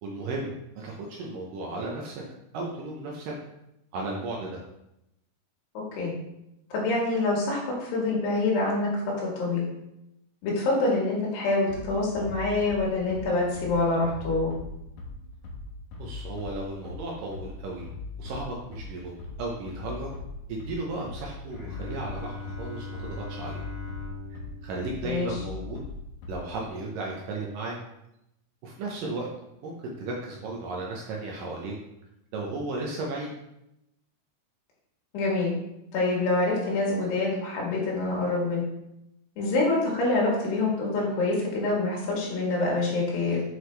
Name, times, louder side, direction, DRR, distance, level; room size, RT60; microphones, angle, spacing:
voice 1, 0.0-2.2 2.5-3.3 3.9-4.6 16.0-17.9 18.2-20.1 20.5-23.6 24.3-25.9 26.3-27.8 28.6-29.3 29.6-31.7 32.3-33.3, right 2 dB, 75° right, -1 dB, 2.1 m, -35 dB
voice 2, 6.7-9.7 10.4-14.5 25.0-25.4 35.1-35.5 35.9-38.6 39.4-43.4, left 2 dB, 85° left, -3 dB, 3.9 m, -26 dB
Bass drum, 11.7-26.7, left 3 dB, 65° left, 2.2 m, -40 dB
Bowed string instrument, 21.5-26.0, left 3 dB, 25° left, 1.6 m, -41 dB
7.8 x 4.9 x 3.2 m, 0.86 s
omnidirectional pair, 4.6 m